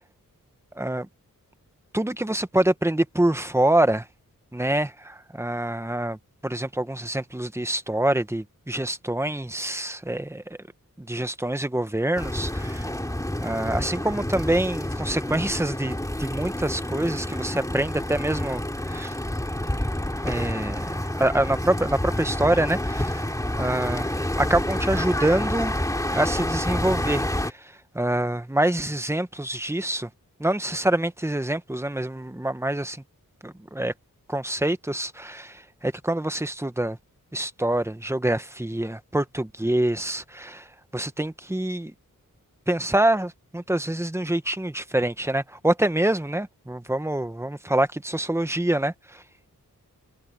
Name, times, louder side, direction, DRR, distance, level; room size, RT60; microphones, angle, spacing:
voice 1, 0.8-1.1 1.9-4.1 4.5-6.2 6.4-10.6 11.0-12.9 13.4-18.6 18.9-19.1 20.2-23.3 23.6-25.7 26.1-30.1 30.4-33.0 33.4-33.9 34.3-37.0 37.3-40.7 40.9-41.9 42.7-49.2, right 1 dB, 10° right, 1.0 m, -26 dB
sound 1, 12.2-27.5, left 1 dB, 10° left, 2.5 m, -28 dB
wide cardioid pair, 110°, 34 cm